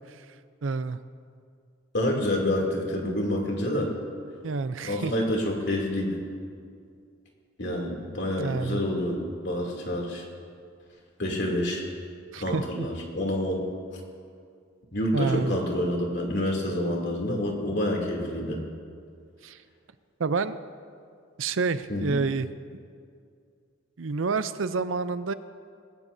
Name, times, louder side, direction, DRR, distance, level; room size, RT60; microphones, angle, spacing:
voice 1, 0.6-1.0 4.4-5.1 8.4-8.8 12.3-12.9 15.1-15.6 19.4-19.6 20.2-20.6 21.4-22.5 24.0-25.3, right 4 dB, 80° right, 13 dB, 0.6 m, -28 dB
voice 2, 1.9-3.9 4.8-6.2 7.6-10.2 11.2-11.8 12.4-13.6 14.9-18.6 21.9-22.2, left 1 dB, 60° left, -1 dB, 2.9 m, -28 dB
20.5 x 17.0 x 2.7 m, 2.3 s
head